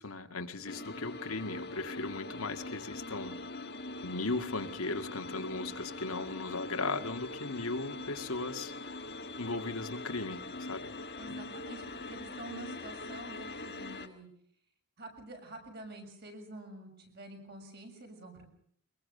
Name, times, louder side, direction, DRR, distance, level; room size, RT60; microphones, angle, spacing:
voice 1, 0.0-3.4 4.0-9.0 9.4-10.9 11.3-11.4, left 3 dB, 85° left, 6 dB, 2.0 m, -37 dB
sound 1, 0.7-14.1, left 2 dB, 50° left, 2.1 m, -42 dB
voice 2, 11.2-14.3 15.0-18.5, right 2 dB, 50° right, 4 dB, 7.0 m, -48 dB
23.5 x 22.0 x 6.7 m, 0.66 s
head